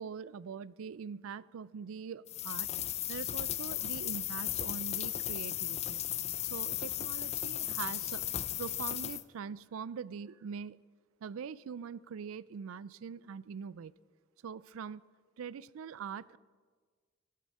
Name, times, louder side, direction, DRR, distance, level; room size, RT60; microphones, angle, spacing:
voice 1, 0.0-2.7 3.1-6.0 6.5-8.3 8.6-10.8 11.2-13.9 14.4-15.0 15.4-16.4, right 6 dB, 90° right, 0.4 m, -43 dB
sound 1, 2.3-9.2, left 12 dB, 30° left, 0.4 m, -36 dB
15.5 x 14.5 x 4.2 m
head